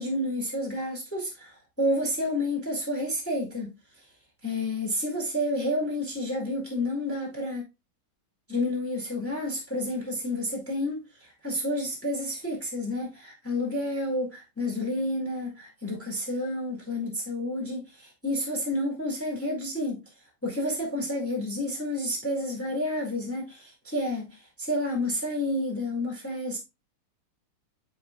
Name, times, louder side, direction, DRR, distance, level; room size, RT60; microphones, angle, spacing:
voice 1, 0.0-3.7 4.4-7.6 8.5-20.0 20.4-26.6, left 1 dB, 10° left, 2.0 m, -30 dB
9.2 x 4.4 x 2.3 m
omnidirectional pair, 1.9 m